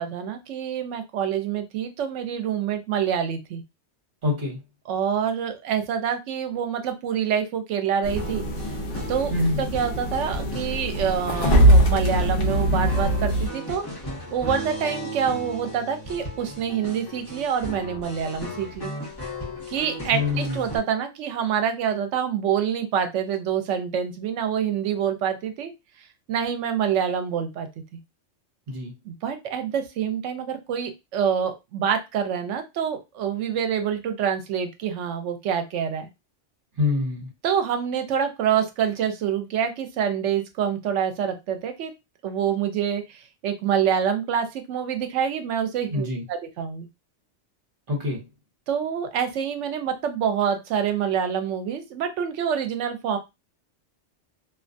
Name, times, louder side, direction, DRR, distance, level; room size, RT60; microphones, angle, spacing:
voice 1, 0.0-3.6 4.9-8.4 9.1-9.3 9.6-13.8 14.3-18.9 19.7-25.7 26.3-27.7 29.1-36.1 37.4-41.9 42.2-46.9 48.7-53.2, right 8 dB, 75° right, 7 dB, 0.9 m, -26 dB
voice 2, 4.2-4.6 9.3-9.7 20.1-20.7 28.7-28.9 36.8-37.3 45.9-46.2 47.9-48.2, left 3 dB, 45° right, -1 dB, 1.1 m, -25 dB
sound 1, 8.0-13.5, right 1 dB, 50° left, 0.7 m, -22 dB
sound 2, 8.2-20.8, equal, 20° left, 1.0 m, -36 dB
2.4 x 2.2 x 2.5 m, 0.23 s
omnidirectional pair, 1.3 m